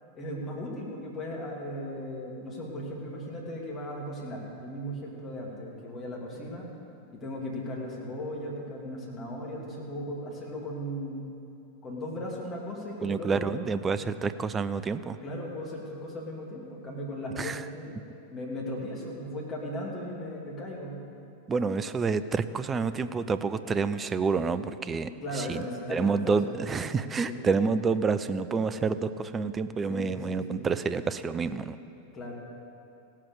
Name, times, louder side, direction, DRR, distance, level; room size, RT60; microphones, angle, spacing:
voice 1, 0.1-6.7 7.1-11.3 11.8-13.6 13.9-14.0 15.2-18.0 18.3-21.0 25.2-26.4 26.9-27.4 29.9-30.4 32.1-32.3, equal, 25° left, -3 dB, 2.9 m, -37 dB
voice 2, 13.0-15.2 17.4-17.6 21.5-25.1 25.4-25.6 25.9-31.8, right 4 dB, 20° right, 13 dB, 0.5 m, -28 dB
17.0 x 7.5 x 6.6 m, 2.6 s
figure-of-eight pair, 90°, 0 cm